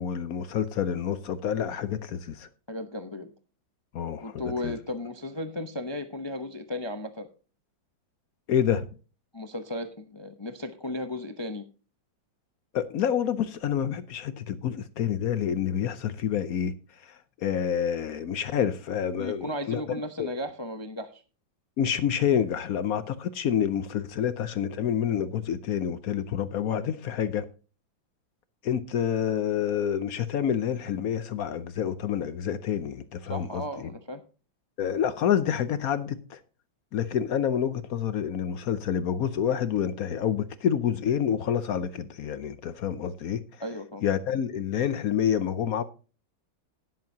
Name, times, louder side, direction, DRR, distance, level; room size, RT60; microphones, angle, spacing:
voice 1, 0.0-2.5 3.9-4.8 8.5-8.9 12.7-16.7 17.4-19.8 20.2-20.3 21.8-27.4 28.6-33.9 34.8-36.4 36.9-43.4 44.0-45.8, left 9 dB, 65° left, 0.9 m, -28 dB
voice 2, 2.7-3.3 4.2-7.3 9.3-11.6 19.2-21.2 33.3-34.2 43.6-44.0, left 1 dB, 45° left, 0.3 m, -35 dB
17.5 x 7.6 x 2.8 m
omnidirectional pair, 2.0 m